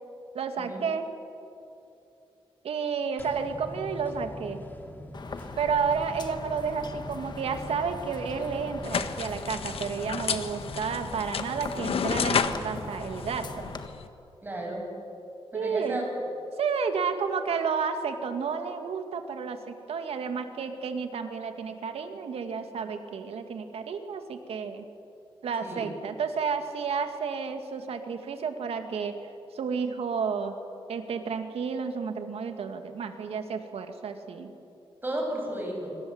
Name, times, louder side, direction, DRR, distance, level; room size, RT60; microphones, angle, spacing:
voice 1, 0.3-1.0 2.6-4.6 5.6-13.7 15.5-16.0 16.6-24.9 25.4-29.1 29.5-30.5 30.9-34.5, right 6 dB, 85° right, 6 dB, 2.4 m, -31 dB
sound 1, 3.2-13.8, left 1 dB, 20° left, 2.7 m, -44 dB
sound 2, 5.1-13.9, left 4 dB, 45° left, 1.7 m, -42 dB
sound 3, 8.8-14.1, left 6 dB, 75° left, 1.5 m, -31 dB
voice 2, 14.4-14.9 15.5-16.3 25.6-25.9 35.0-35.9, right 1 dB, 20° right, 0 dB, 7.8 m, -33 dB
26.0 x 25.0 x 8.1 m, 2.7 s
wide cardioid pair, 120°, 10 cm